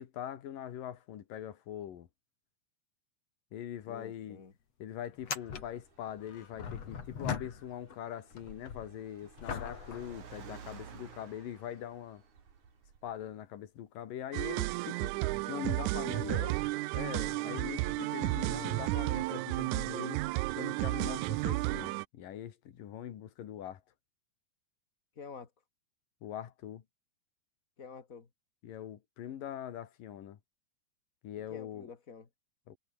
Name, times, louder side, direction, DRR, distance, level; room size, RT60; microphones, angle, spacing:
voice 1, 0.0-2.1 3.5-4.4 4.8-12.2 13.0-15.2 15.5-16.4 16.9-20.2 20.6-23.8 26.2-26.8 28.6-30.4 31.2-31.9 32.7-32.8, left 10 dB, 90° left, 3.5 m, -42 dB
sound 1, 3.8-3.9 4.2-4.3 5.1-8.0 8.3-11.0 11.7-11.8 15.9-16.0 17.4-17.5, left 6 dB, 50° left, 3.8 m, -42 dB
voice 2, 3.9-4.5 16.2-16.6 25.2-25.5 27.8-28.3 31.5-32.3, left 5 dB, 30° left, 2.0 m, -46 dB
Car, 5.4-13.3, right 7 dB, 65° right, 4.3 m, -54 dB
sound 2, 14.3-22.0, right 21 dB, 80° right, 1.8 m, -33 dB
omnidirectional pair, 3.8 m